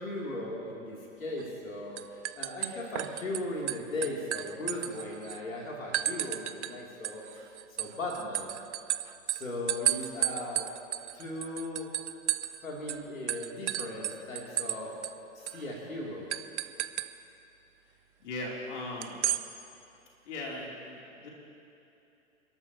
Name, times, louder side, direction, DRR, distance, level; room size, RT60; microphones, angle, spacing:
voice 1, 0.0-7.5 7.8-8.5 9.3-10.7 11.1-11.9 12.6-14.9 15.3-16.3, left 2 dB, 80° left, -3 dB, 3.1 m, -37 dB
sound 1, 1.4-1.7 2.0-3.4 3.7-5.4 5.9-6.7 7.0-12.6 12.9-13.0 13.3-14.8 15.0-15.1 15.5-15.6 16.3-17.1 19.0-19.4, right 13 dB, 60° right, 0.7 m, -32 dB
voice 2, 18.2-19.2 20.2-21.3, left 2 dB, 60° left, -2 dB, 3.2 m, -38 dB
29.5 x 13.0 x 2.9 m, 2.8 s
figure-of-eight pair, 105°, 40 cm